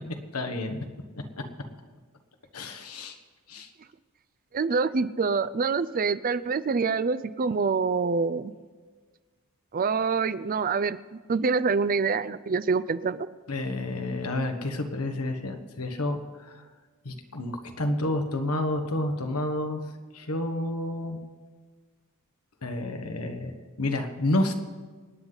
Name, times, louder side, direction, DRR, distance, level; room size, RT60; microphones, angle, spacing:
voice 1, 0.3-0.8 2.5-3.1 3.5-3.7 13.5-16.6 17.0-19.8 20.1-21.2 22.6-23.5 23.8-24.5, left 1 dB, 85° left, 5 dB, 1.4 m, -30 dB
voice 2, 4.5-8.5 9.7-13.3, right 4 dB, 40° right, 15 dB, 0.5 m, -26 dB
27.0 x 9.6 x 4.0 m, 1.5 s
head